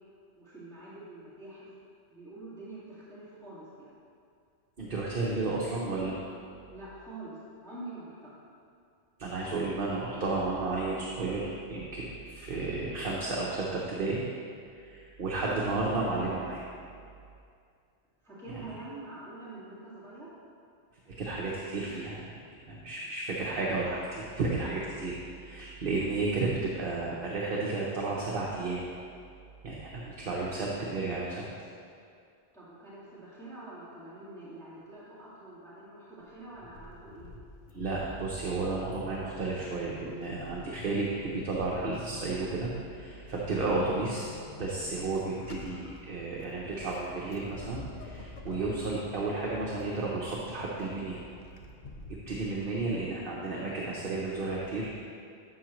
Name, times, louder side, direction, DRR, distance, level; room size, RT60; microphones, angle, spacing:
voice 1, 0.3-1.7 2.1-4.0 6.7-8.3 18.2-20.3 32.5-37.3, right 2 dB, 5° left, -13 dB, 1.9 m, -46 dB
voice 2, 4.8-6.2 9.2-14.2 14.7-16.6 21.1-22.3 22.7-25.2 25.4-28.8 29.6-31.4 37.7-44.3 44.6-51.2 52.1-54.9, right 3 dB, 55° right, -4 dB, 1.0 m, -32 dB
Vehicle / Accelerating revving vroom / Squeak, 36.2-53.4, left 3 dB, 50° left, 0.7 m, -48 dB
12.0 x 5.7 x 3.1 m, 2.3 s
omnidirectional pair, 1.1 m